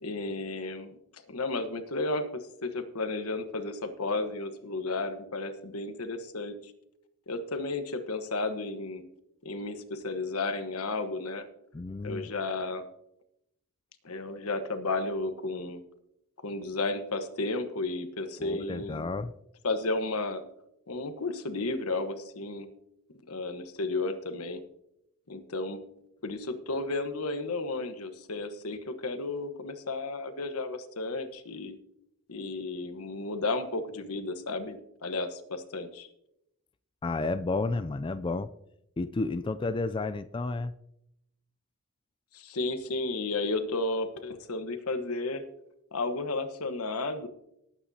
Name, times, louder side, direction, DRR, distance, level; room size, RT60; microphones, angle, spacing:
voice 1, 0.0-6.7 7.3-9.0 9.4-11.5 12.0-12.8 14.0-15.8 16.4-19.1 19.6-20.4 20.9-22.7 23.3-24.6 25.3-25.8 26.2-31.8 32.3-36.1 42.3-45.4 45.9-47.3, left 2 dB, 85° left, 8 dB, 1.2 m, -33 dB
voice 2, 11.7-12.3 18.4-19.3 37.0-38.5 39.0-40.7, left 3 dB, 20° left, 11 dB, 0.3 m, -31 dB
19.0 x 8.8 x 2.8 m, 0.81 s
head